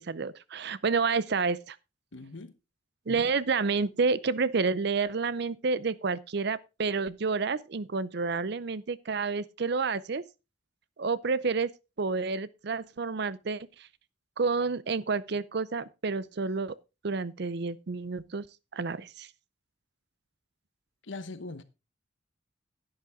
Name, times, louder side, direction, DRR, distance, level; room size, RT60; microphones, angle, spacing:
voice 1, 0.0-1.8 3.1-10.2 11.0-11.7 12.0-13.7 14.4-16.7 17.0-18.4 18.7-19.3, right 4 dB, 60° right, 0.6 m, -29 dB
voice 2, 2.1-2.5 21.0-21.6, left 3 dB, 75° left, 1.0 m, -40 dB
10.5 x 9.6 x 3.7 m
head